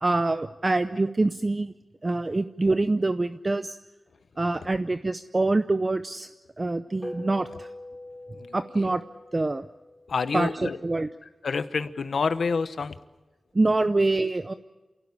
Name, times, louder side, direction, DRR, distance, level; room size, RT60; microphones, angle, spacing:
voice 1, 0.0-1.7 2.0-3.8 4.4-6.3 6.6-7.7 8.5-9.0 9.3-9.6 10.3-11.1 13.5-14.5, right 2 dB, 30° right, 10 dB, 0.7 m, -25 dB
sound 1, 7.0-11.7, left 1 dB, 10° left, 4.9 m, -44 dB
voice 2, 10.1-10.8 11.4-13.0, left 5 dB, 75° left, 11 dB, 1.2 m, -27 dB
28.5 x 17.0 x 8.5 m, 1.1 s
wide cardioid pair, 125°, 0 cm